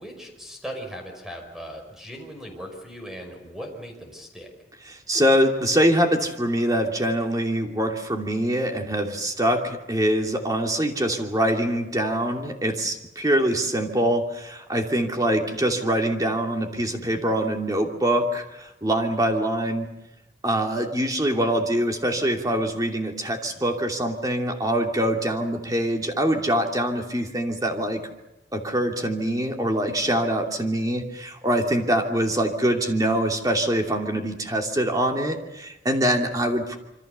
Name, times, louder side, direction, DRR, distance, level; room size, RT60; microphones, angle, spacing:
voice 1, 0.0-4.5, equal, ahead, 3 dB, 5.4 m, -38 dB
voice 2, 4.9-19.9 20.4-28.0 28.5-36.8, right 1 dB, 20° right, 3 dB, 2.8 m, -24 dB
27.0 x 25.0 x 6.9 m, 0.95 s
head